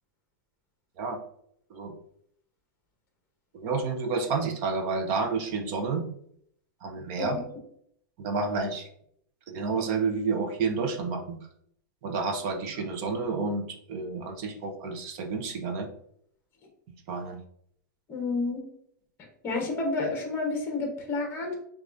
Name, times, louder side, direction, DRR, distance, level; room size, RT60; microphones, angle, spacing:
voice 1, 3.5-6.1 6.8-7.4 8.2-8.9 9.5-11.4 12.0-15.9 17.1-17.4, right 4 dB, 40° right, 5 dB, 0.6 m, -30 dB
voice 2, 18.1-18.6 19.4-21.5, left 3 dB, 20° left, 2 dB, 1.0 m, -30 dB
6.3 x 2.4 x 2.6 m, 0.68 s
supercardioid pair, 165°, 11 cm